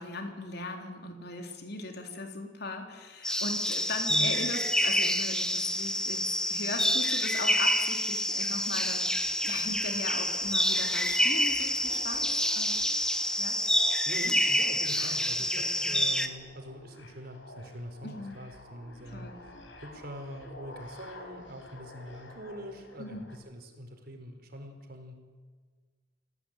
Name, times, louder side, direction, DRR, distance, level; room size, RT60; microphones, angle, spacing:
voice 1, 0.0-12.8 13.4-13.6 15.0-15.2 15.5-16.0 18.0-18.4 19.1-19.4 23.0-23.2, left 2 dB, 60° left, 4 dB, 3.6 m, -39 dB
sound 1, 3.2-16.3, equal, 5° left, 1.5 m, -28 dB
sound 2, 8.1-23.4, left 1 dB, 90° left, 5.0 m, -51 dB
voice 2, 14.1-19.5 19.8-25.1, equal, 55° right, 5 dB, 4.3 m, -43 dB
27.0 x 17.0 x 9.0 m, 1.5 s
head